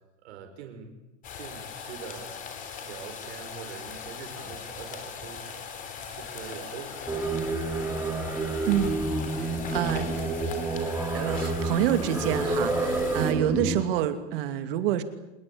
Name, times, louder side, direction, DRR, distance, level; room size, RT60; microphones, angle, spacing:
voice 1, 0.2-0.9 1.4-2.4 2.8-5.6 6.1-7.5, right 7 dB, 70° right, 5 dB, 5.8 m, -43 dB
sound 1, 1.2-13.3, left 6 dB, 25° left, 3.5 m, -39 dB
Singing, 7.1-13.8, right 2 dB, 5° right, 2.7 m, -29 dB
voice 2, 8.7-9.0 9.3-10.3 11.1-15.0, right 11 dB, 55° right, 9 dB, 2.8 m, -27 dB
27.0 x 21.5 x 8.7 m, 0.94 s
supercardioid pair, 170°, 34 cm